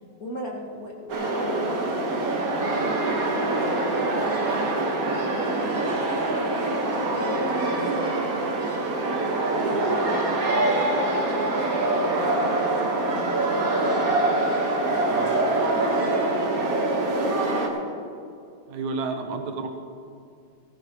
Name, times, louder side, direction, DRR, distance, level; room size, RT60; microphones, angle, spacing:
voice 1, 0.2-2.6 3.0-5.0 5.3-8.2 9.5-14.4 14.8-15.6 16.4-17.7, left 1 dB, 35° left, -3 dB, 1.9 m, -38 dB
sound 1, 1.1-17.7, right 2 dB, 40° right, 1.3 m, -24 dB
voice 2, 18.7-19.7, right 4 dB, 75° right, 4 dB, 2.4 m, -31 dB
17.0 x 14.5 x 3.1 m, 2.5 s
omnidirectional pair, 3.4 m